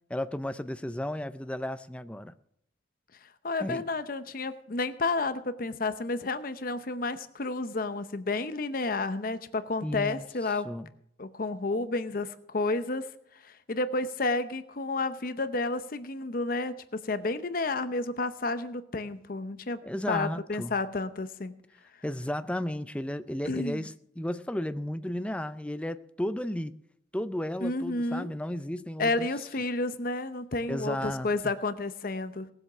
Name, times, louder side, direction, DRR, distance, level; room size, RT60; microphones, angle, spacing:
voice 1, 0.1-2.3 3.6-3.8 9.8-10.2 10.6-10.9 19.8-20.7 22.0-26.7 27.1-29.3 30.7-31.3, left 1 dB, 5° left, 0.5 m, -33 dB
voice 2, 3.4-10.7 11.2-13.1 13.4-19.8 20.1-21.6 23.5-23.9 27.6-28.3 29.0-32.5, left 3 dB, 50° left, 0.7 m, -31 dB
18.5 x 7.8 x 6.0 m
head